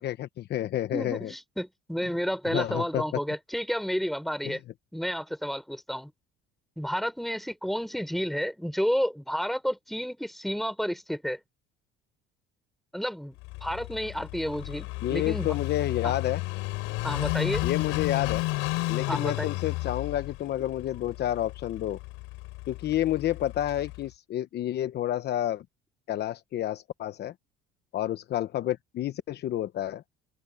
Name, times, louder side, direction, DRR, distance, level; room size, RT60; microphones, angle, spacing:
voice 1, 0.0-1.3 2.5-3.0 4.4-4.6 15.0-16.4 17.6-18.4 18.9-22.0 22.7-25.6 26.1-27.3 27.9-30.0, left 12 dB, 55° left, 0.9 m, -30 dB
voice 2, 0.9-4.6 4.9-6.1 6.8-11.4 12.9-13.4 13.6-15.6 16.0-16.1 17.0-17.6 19.1-19.5, equal, ahead, 4.5 m, -31 dB
Car passing by / Idling, 13.4-24.1, left 22 dB, 90° left, 3.7 m, -32 dB
open air
cardioid pair, 115°, 21 cm